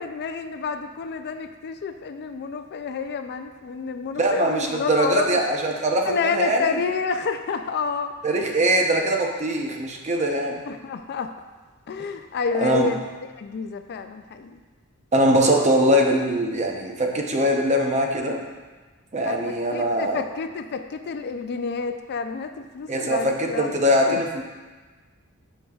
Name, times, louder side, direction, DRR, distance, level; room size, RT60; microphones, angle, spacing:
voice 1, 0.0-5.4 6.0-8.1 10.7-11.3 11.9-13.0 13.4-14.6 19.2-23.7 24.1-24.2, left 5 dB, 50° left, 8 dB, 0.4 m, -29 dB
voice 2, 4.2-6.8 8.2-10.6 12.0-12.1 12.6-13.0 15.1-18.5 19.1-20.2 22.9-24.4, right 1 dB, 30° right, 2 dB, 0.7 m, -22 dB
9.2 x 6.5 x 2.4 m, 1.3 s
head